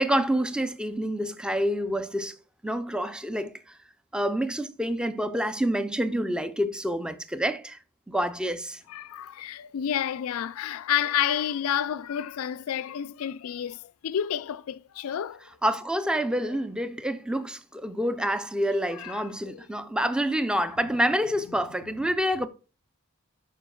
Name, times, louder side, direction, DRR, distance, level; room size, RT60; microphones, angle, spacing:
voice 1, 0.0-2.4 2.6-3.8 4.1-7.8 8.1-8.8 15.6-22.5, equal, 5° right, 0.5 m, -27 dB
voice 2, 8.9-15.5 19.0-19.6, left 9 dB, 75° left, 0.4 m, -30 dB
12.0 x 5.1 x 2.3 m
head